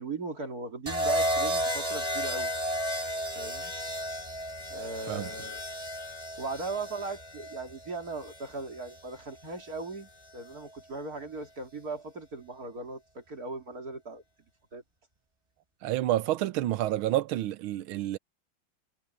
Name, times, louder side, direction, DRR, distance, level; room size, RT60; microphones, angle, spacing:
voice 1, 0.0-2.5 3.4-3.7 4.7-5.6 6.4-14.2 14.7-14.8, right 3 dB, 45° right, 3.5 m, -38 dB
sound 1, 0.9-9.0 10.2-10.6, equal, 15° right, 5.2 m, -33 dB
voice 2, 15.8-18.2, right 14 dB, 85° right, 1.6 m, -29 dB
omnidirectional pair, 2.2 m